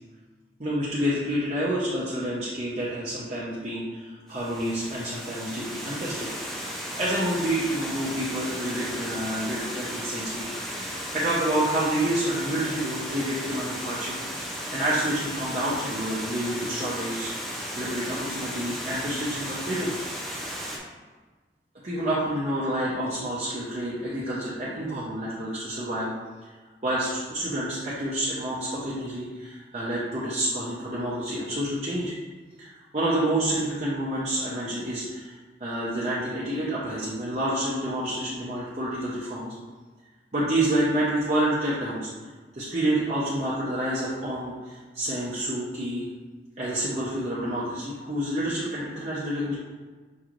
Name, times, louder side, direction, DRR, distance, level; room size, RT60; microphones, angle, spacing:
voice 1, 0.6-6.3 6.7-10.4 10.8-14.1 14.7-19.9 20.2-20.4 21.8-26.1 26.4-26.5 26.8-32.1 32.6-39.5 40.3-42.1 42.5-46.0 46.6-49.5, right 1 dB, 40° right, -8 dB, 0.7 m, -28 dB
Water, 4.3-20.8, equal, ahead, 0.5 m, -35 dB
6.2 x 3.0 x 2.5 m, 1.4 s
head